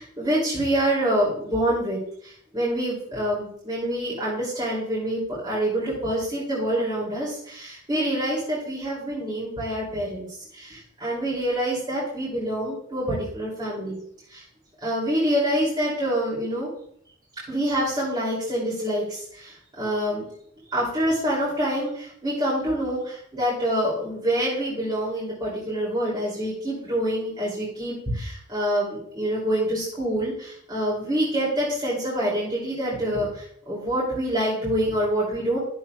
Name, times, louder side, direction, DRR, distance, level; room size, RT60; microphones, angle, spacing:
voice 1, 0.0-10.3 10.5-14.0 14.3-14.4 14.8-16.7 17.5-20.2 20.7-35.6, equal, 20° right, -8 dB, 2.9 m, -26 dB
11.5 x 7.1 x 2.4 m, 0.66 s
head